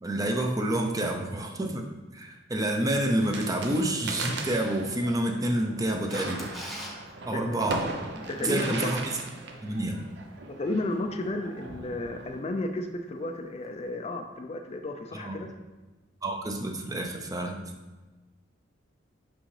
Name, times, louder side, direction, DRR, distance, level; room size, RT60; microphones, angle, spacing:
voice 1, 0.0-1.9 2.1-6.5 7.3-7.9 8.4-9.2 9.6-10.1 15.1-15.4 16.2-17.6, right 1 dB, 20° right, 3 dB, 0.5 m, -28 dB
sound 1, 3.2-12.4, right 3 dB, 65° right, 0.7 m, -39 dB
Camera, 6.1-6.9 13.6-13.7, equal, ahead, 0.9 m, -39 dB
voice 2, 8.3-8.9 10.5-15.5, left 2 dB, 35° left, 5 dB, 0.4 m, -33 dB
6.1 x 5.4 x 3.2 m, 1.2 s
head